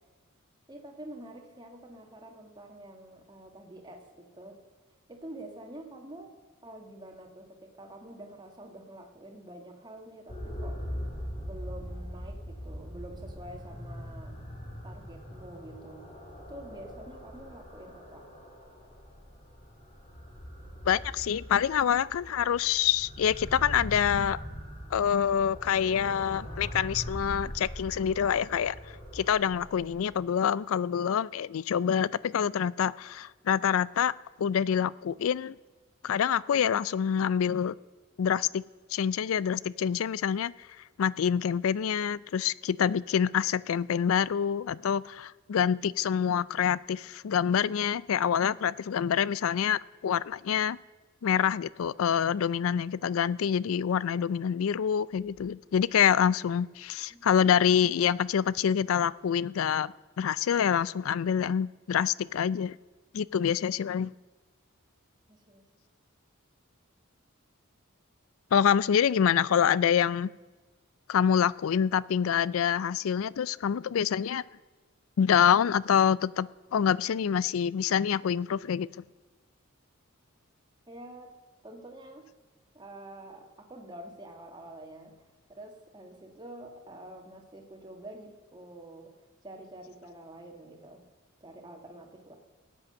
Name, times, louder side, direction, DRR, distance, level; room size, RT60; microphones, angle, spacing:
voice 1, 0.7-4.6 5.1-6.3 6.6-10.8 11.4-14.4 14.8-16.1 16.5-18.3 57.1-57.8 65.3-65.6 80.9-81.3 81.6-82.3 82.7-85.1 85.5-89.1 89.4-91.0 91.4-92.3, right 1 dB, 20° right, 1.7 m, -47 dB
sound 1, 10.3-30.1, equal, 30° left, 2.9 m, -41 dB
voice 2, 20.9-24.4 24.9-28.8 29.1-34.1 34.4-35.6 36.0-37.7 38.2-38.6 38.9-40.5 41.0-50.8 51.2-62.8 63.1-64.1 68.5-70.3 71.1-74.4 75.2-78.9, left 8 dB, 70° left, 0.4 m, -26 dB
17.5 x 8.6 x 6.7 m
head